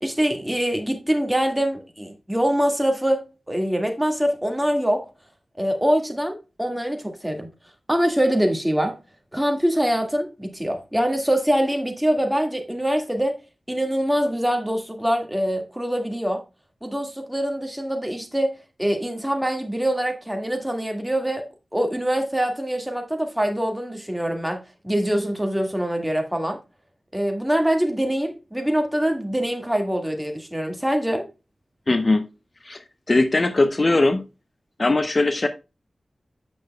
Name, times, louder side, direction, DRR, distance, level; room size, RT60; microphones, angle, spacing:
voice 1, 0.0-5.1 5.6-7.5 7.9-9.0 9.3-13.4 13.7-16.4 16.8-26.6 27.1-31.3, equal, 5° right, 1.8 m, -24 dB
voice 2, 31.9-32.2 32.6-34.2 34.8-35.5, left 2 dB, 45° left, 0.7 m, -20 dB
8.6 x 6.5 x 2.2 m
wide cardioid pair, 65°, 0 cm